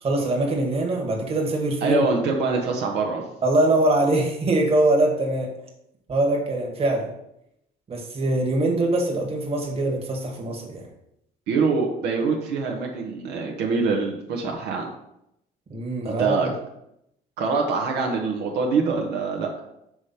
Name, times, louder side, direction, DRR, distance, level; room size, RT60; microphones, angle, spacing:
voice 1, 0.0-2.0 3.4-5.5 6.1-7.1 7.9-10.9 15.7-16.5, right 2 dB, 35° right, 1 dB, 1.6 m, -23 dB
voice 2, 1.8-3.2 11.5-14.9 16.2-16.5 17.4-19.5, right 4 dB, 80° right, 1 dB, 1.1 m, -24 dB
6.1 x 3.4 x 5.7 m, 0.80 s
cardioid pair, 110°, 17 cm